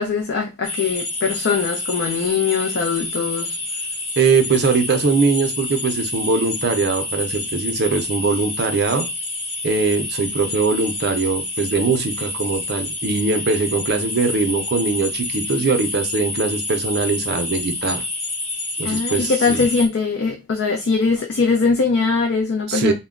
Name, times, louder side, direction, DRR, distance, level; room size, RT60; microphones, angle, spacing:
voice 1, 0.0-3.6 18.8-22.9, left 4 dB, 55° left, 0.4 m, -21 dB
sound 1, 0.6-19.9, left 2 dB, 25° left, 0.9 m, -28 dB
voice 2, 4.2-9.1 9.6-18.0 18.8-19.6 22.7-22.9, right 4 dB, 50° right, 0.5 m, -21 dB
2.2 x 2.1 x 3.6 m
head